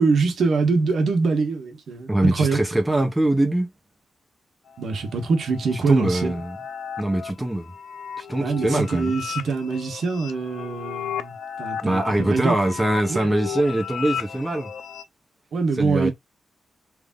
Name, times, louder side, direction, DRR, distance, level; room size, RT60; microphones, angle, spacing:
voice 1, 0.0-2.6 4.8-6.4 8.4-12.7 13.1-13.3 15.5-16.1, right 4 dB, 65° right, 1.1 m, -24 dB
voice 2, 2.1-3.7 5.8-6.6 7.0-7.7 8.2-9.1 11.8-14.7 15.8-16.1, right 1 dB, 5° right, 0.7 m, -23 dB
sound 1, 4.7-15.0, left 7 dB, 85° left, 0.4 m, -35 dB
3.4 x 2.6 x 3.6 m
wide cardioid pair, 155°, 0 cm